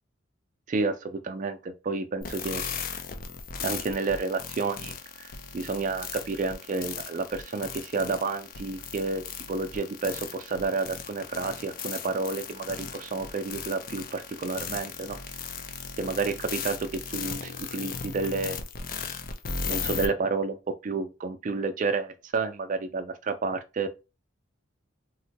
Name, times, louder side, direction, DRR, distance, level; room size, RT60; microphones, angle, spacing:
voice 1, 0.7-2.6 3.6-5.3 5.5-15.2 16.0-18.6 19.7-23.9, right 4 dB, 40° right, 0.4 m, -30 dB
sound 1, 2.2-20.1, left 6 dB, 45° left, 0.5 m, -37 dB
3.7 x 2.1 x 2.8 m
head